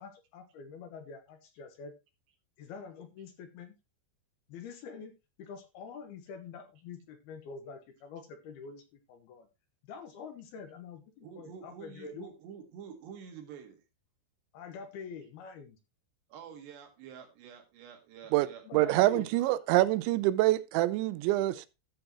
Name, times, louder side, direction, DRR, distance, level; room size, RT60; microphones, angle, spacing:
voice 1, 0.0-1.9 2.6-3.7 4.5-5.1 5.4-9.5 9.9-12.3 14.5-15.8 18.6-19.3 21.5-21.7, left 5 dB, 70° left, 3.0 m, -46 dB
voice 2, 11.2-13.8 16.3-19.2, right 7 dB, 75° right, 4.0 m, -48 dB
voice 3, 18.7-21.7, right 17 dB, 90° right, 3.0 m, -26 dB
14.0 x 7.8 x 3.0 m
omnidirectional pair, 5.1 m